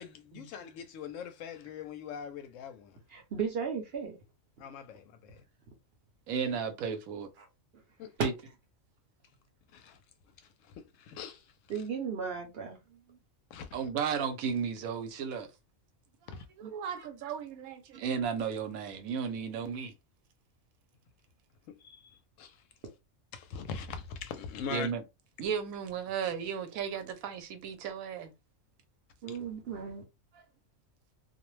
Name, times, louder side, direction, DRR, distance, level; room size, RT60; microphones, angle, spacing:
voice 1, 0.0-2.9 4.6-5.4 8.0-8.1 9.7-10.0 10.8-11.4 13.5-13.7 16.3-16.4 21.8-22.5 23.3-24.9 29.3-29.4, left 6 dB, 70° left, 0.9 m, -42 dB
voice 2, 3.1-4.2 8.2-8.3 11.7-13.2 16.6-16.7 29.2-30.0, right 6 dB, 55° right, 0.8 m, -35 dB
voice 3, 6.3-7.3 8.2-8.3 13.7-15.5 16.3-19.9 24.7-25.0 25.4-28.3, right 7 dB, 85° right, 1.1 m, -34 dB
2.5 x 2.1 x 3.0 m
omnidirectional pair, 1.4 m